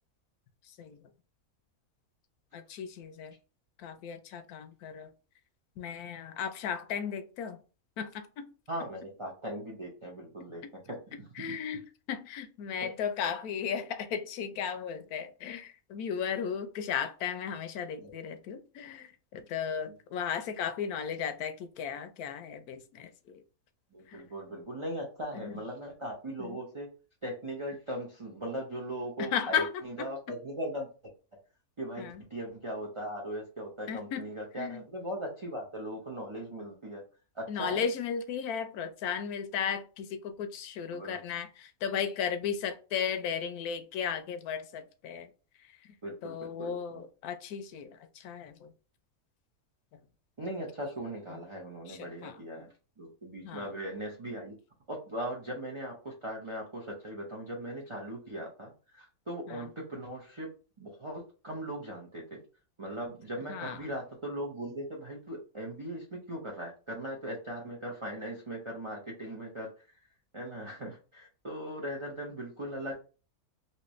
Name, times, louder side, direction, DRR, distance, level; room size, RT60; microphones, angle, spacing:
voice 1, 0.6-1.0 2.5-3.3 3.8-5.1 5.8-7.6 8.0-8.5 10.6-10.7 11.3-23.4 24.1-24.2 25.3-25.6 26.4-26.6 29.2-30.1 32.0-32.2 33.9-34.3 34.5-34.8 37.5-45.3 45.6-46.0 46.2-48.7 49.9-50.0 51.3-51.4 51.9-52.7 53.4-53.7 59.5-59.7 63.5-63.8, left 7 dB, 85° left, 1.1 m, -35 dB
voice 2, 8.7-10.6 11.5-11.6 18.0-18.1 23.9-26.9 27.2-30.9 31.8-37.0 37.3-37.9 40.9-41.2 46.0-46.8 50.4-52.7 53.0-54.5 54.9-60.5 60.8-62.4 62.8-69.7 70.3-73.0, right 1 dB, 35° right, 0.5 m, -39 dB
3.3 x 2.8 x 3.0 m
omnidirectional pair, 1.5 m